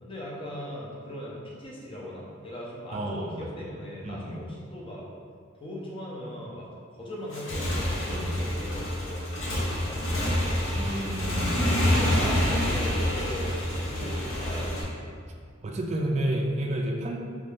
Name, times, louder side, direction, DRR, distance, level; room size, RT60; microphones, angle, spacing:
voice 1, 0.0-5.0 5.6-6.7 6.9-10.6 11.9-14.9, equal, 25° left, -4 dB, 0.6 m, -39 dB
voice 2, 2.9-3.4 4.0-4.4 8.1-8.4 10.7-11.6 12.1-12.3 15.6-17.2, right 1 dB, 35° right, 1 dB, 0.4 m, -30 dB
Motorcycle / Engine, 7.2-14.8, left 1 dB, 70° left, 0.7 m, -27 dB
3.2 x 2.7 x 3.4 m, 2.1 s
head